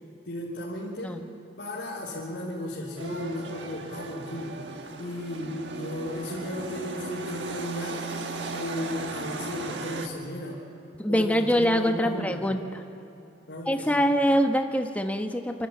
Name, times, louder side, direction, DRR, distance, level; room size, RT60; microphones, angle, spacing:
voice 1, 0.2-1.2 1.6-4.6 5.0-8.1 8.5-10.7 11.1-12.4 13.5-14.0, left 1 dB, 85° left, -8 dB, 3.5 m, -35 dB
sound 1, 3.0-10.1, right 3 dB, 75° right, 1.4 m, -36 dB
voice 2, 11.0-12.6 13.7-15.7, equal, 10° left, 5 dB, 1.0 m, -24 dB
27.5 x 13.0 x 8.6 m, 2.8 s
head